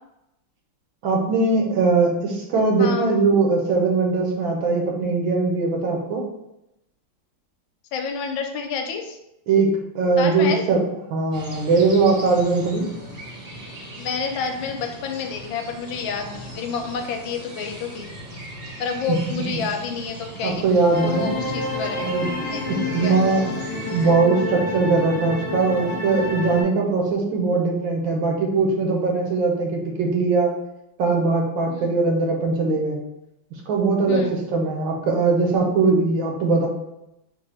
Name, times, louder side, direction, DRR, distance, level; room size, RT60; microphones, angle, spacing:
voice 1, 1.0-6.2 9.5-9.7 9.9-10.8 11.1-12.8 19.1-19.2 20.4-21.3 22.0-22.3 22.7-23.4 23.9-30.5 31.0-33.0 33.7-36.7, right 3 dB, 80° right, 1 dB, 1.6 m, -20 dB
voice 2, 2.8-3.1 7.9-9.2 10.2-10.6 14.0-18.1 18.8-20.7 21.0-22.1 22.4-23.4 31.7-31.9 34.1-34.3, left 5 dB, 80° left, 4 dB, 1.4 m, -29 dB
sound 1, 11.3-24.1, right 1 dB, 45° right, 1.1 m, -39 dB
sound 2, 20.9-26.6, left 2 dB, 60° left, 1.3 m, -28 dB
4.2 x 2.7 x 4.3 m, 0.88 s
omnidirectional pair, 2.2 m